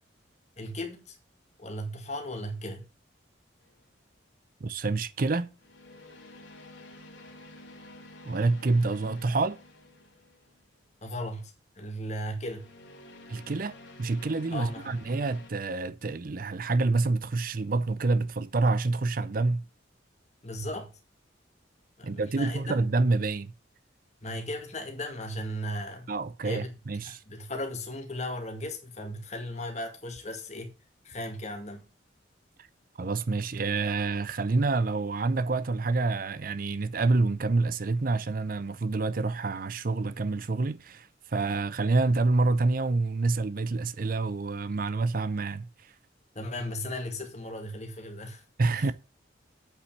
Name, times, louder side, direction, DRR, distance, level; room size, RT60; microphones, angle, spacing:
voice 1, 0.6-1.2 1.6-2.8 11.0-12.6 14.5-14.9 20.4-20.9 22.0-22.8 24.2-26.1 26.4-26.7 27.0-30.7 31.0-31.8 46.4-48.4 48.7-48.9, left 1 dB, 35° left, 2.1 m, -36 dB
sound 1, 3.6-3.9 5.6-10.7 12.4-15.5, left 2 dB, 75° left, 2.6 m, -50 dB
voice 2, 4.6-5.5 8.3-9.6 13.3-19.6 22.0-23.5 26.1-27.2 33.0-45.7 48.6-48.9, right 3 dB, 45° right, 0.5 m, -27 dB
8.3 x 5.5 x 7.1 m
head